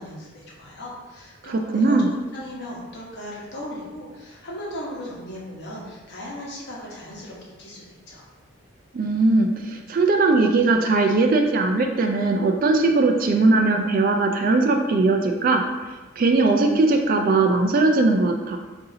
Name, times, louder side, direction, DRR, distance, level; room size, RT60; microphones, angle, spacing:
voice 1, 0.0-8.2, left 1 dB, 50° left, -5 dB, 1.0 m, -37 dB
voice 2, 1.4-2.1 8.9-15.6 16.2-18.6, right 3 dB, 40° right, 3 dB, 0.3 m, -19 dB
4.0 x 2.7 x 3.8 m, 1.2 s
head